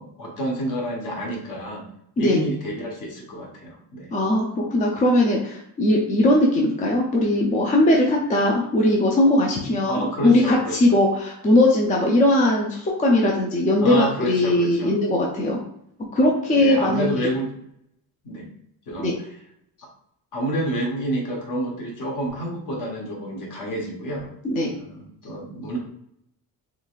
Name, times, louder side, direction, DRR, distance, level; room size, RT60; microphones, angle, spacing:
voice 1, 0.0-1.9 2.2-4.1 9.9-11.0 13.8-15.0 16.6-17.5 18.2-18.5 18.9-19.2 19.8-19.9 20.3-24.3 24.7-25.8, right 1 dB, 50° left, -1 dB, 1.2 m, -29 dB
voice 2, 4.1-15.6 16.1-17.1 19.0-19.1 24.4-24.7, left 1 dB, 20° left, -1 dB, 0.4 m, -19 dB
3.9 x 3.1 x 2.4 m, 0.73 s
cardioid pair, 155°, 39 cm